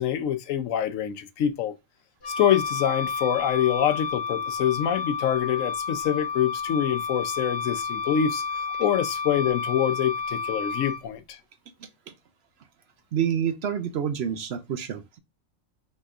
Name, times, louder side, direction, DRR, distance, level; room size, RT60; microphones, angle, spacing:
voice 1, 0.0-1.7 2.3-8.4 8.8-11.4, left 9 dB, 75° left, 1.0 m, -25 dB
Wind instrument woodwind instrument, 2.2-11.0, left 5 dB, 50° left, 1.0 m, -31 dB
voice 2, 13.1-15.2, right 8 dB, 60° right, 0.7 m, -28 dB
5.5 x 3.3 x 2.4 m
omnidirectional pair, 1.4 m